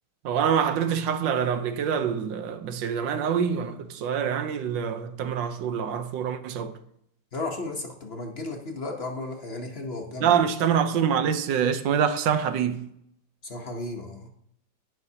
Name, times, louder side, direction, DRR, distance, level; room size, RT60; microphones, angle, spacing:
voice 1, 0.2-6.7 10.2-12.9, right 8 dB, 90° right, 1.4 m, -25 dB
voice 2, 7.3-10.3 13.4-14.3, left 2 dB, 45° left, 1.0 m, -34 dB
17.0 x 5.7 x 2.8 m
omnidirectional pair, 2.0 m